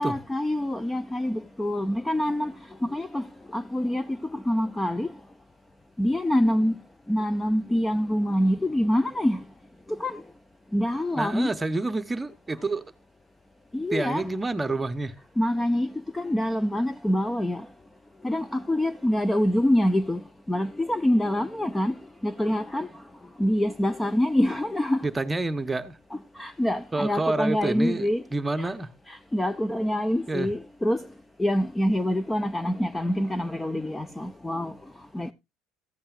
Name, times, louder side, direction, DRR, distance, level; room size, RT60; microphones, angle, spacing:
voice 1, 0.0-2.5 2.8-3.2 3.5-4.1 4.3-5.1 6.0-6.7 7.1-9.4 10.0-10.2 10.7-11.5 13.7-14.3 15.4-17.6 18.2-20.2 20.5-21.9 22.2-22.9 23.4-25.1 26.1-28.2 28.6-28.7 29.1-31.0 31.4-34.7 35.1-35.3, left 1 dB, 10° left, 0.5 m, -25 dB
voice 2, 11.2-12.8 13.9-15.1 25.0-26.0 26.9-28.9 30.3-30.5, right 2 dB, 15° right, 0.9 m, -28 dB
15.0 x 8.7 x 2.4 m
supercardioid pair, 105°, 0 cm